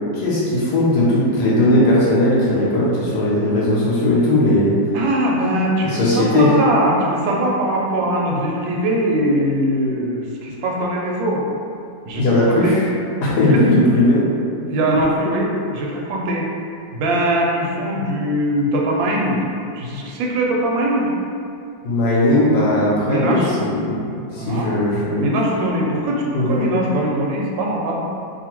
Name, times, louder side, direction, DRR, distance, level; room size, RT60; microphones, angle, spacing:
voice 1, 0.1-4.8 5.8-6.5 12.1-12.9 13.2-14.2 21.8-24.1 24.3-25.3 26.3-26.7, left 1 dB, 70° left, -6 dB, 1.0 m, -17 dB
voice 2, 4.9-11.4 12.0-12.7 13.5-13.6 14.6-16.5 16.9-19.4 19.7-21.1 23.1-23.5 24.3-24.7 25.2-28.0, right 1 dB, 90° right, -2 dB, 1.3 m, -21 dB
2.8 x 2.5 x 2.9 m, 2.5 s
omnidirectional pair, 2.0 m